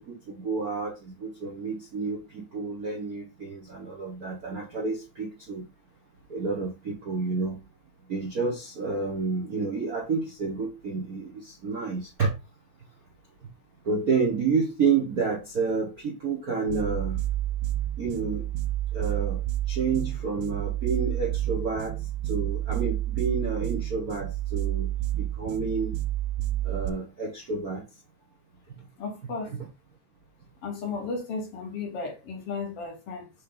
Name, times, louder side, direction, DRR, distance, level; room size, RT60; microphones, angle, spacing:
voice 1, 0.0-5.6 6.3-7.6 8.1-12.3 13.8-17.2 18.0-18.4 18.9-19.4 19.7-22.0 22.3-25.9 26.6-27.8, right 4 dB, 50° right, 1.1 m, -29 dB
sound 1, 16.7-26.9, right 14 dB, 90° right, 2.0 m, -30 dB
voice 2, 29.0-29.6 30.6-33.3, left 4 dB, 60° left, 2.1 m, -34 dB
7.6 x 3.4 x 3.9 m
omnidirectional pair, 3.3 m